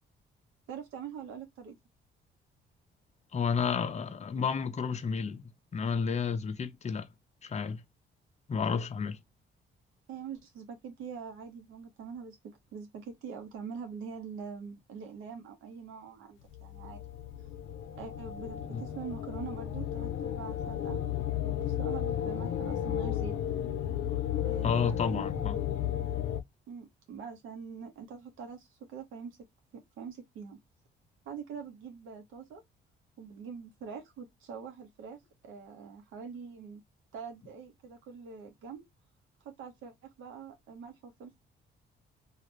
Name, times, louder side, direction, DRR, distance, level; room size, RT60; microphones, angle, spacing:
voice 1, 0.7-1.8 10.1-17.0 18.0-21.0 21.4-23.3 24.4-25.3 26.7-29.4 29.7-30.6 31.2-32.6 33.2-36.8 37.1-38.8 39.4-41.4, right 6 dB, 85° right, 1.0 m, -44 dB
voice 2, 3.3-7.1 7.4-7.8 8.5-9.2 18.7-18.8 24.6-25.6, left 6 dB, 35° left, 0.6 m, -31 dB
sound 1, 16.5-26.4, left 10 dB, 85° left, 0.5 m, -34 dB
2.8 x 2.4 x 3.1 m
cardioid pair, 90°, 20 cm